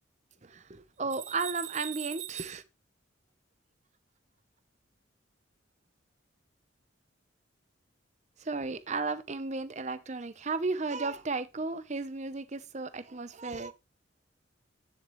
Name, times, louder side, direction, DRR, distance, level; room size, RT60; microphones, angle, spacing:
voice 1, 0.4-2.6 8.4-13.7, right 4 dB, 35° right, 0.7 m, -34 dB
9.5 x 7.7 x 3.1 m
head